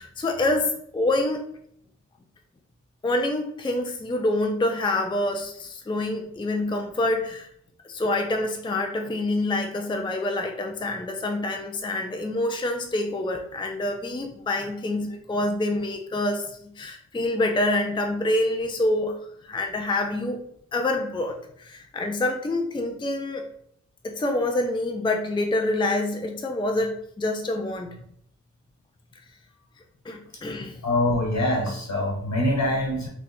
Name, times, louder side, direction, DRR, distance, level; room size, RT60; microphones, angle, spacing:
voice 1, 0.0-1.5 3.0-7.5 7.8-19.2 19.5-20.4 20.7-23.5 24.0-28.0 30.0-30.7, left 2 dB, 15° left, 3 dB, 0.4 m, -26 dB
voice 2, 30.8-33.1, left 1 dB, 65° left, -1 dB, 1.2 m, -24 dB
2.6 x 2.3 x 4.0 m, 0.69 s
cardioid pair, 50°, 30 cm